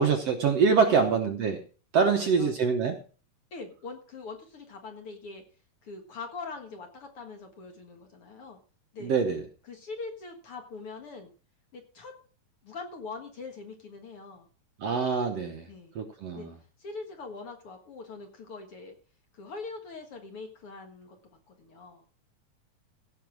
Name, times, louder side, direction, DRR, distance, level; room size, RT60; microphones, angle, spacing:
voice 1, 0.0-1.6 1.9-3.0 9.0-9.4 14.8-15.7 16.0-16.5, right 5 dB, 60° right, 5 dB, 1.8 m, -25 dB
voice 2, 0.9-1.2 2.1-2.6 3.5-5.4 5.8-8.6 8.9-9.1 9.6-11.3 11.7-12.1 12.6-14.5 15.7-16.0 16.3-16.5 16.8-19.0 19.3-21.2 21.5-22.1, left 4 dB, 50° left, 4 dB, 2.1 m, -42 dB
16.0 x 6.0 x 6.2 m, 0.38 s
omnidirectional pair, 3.8 m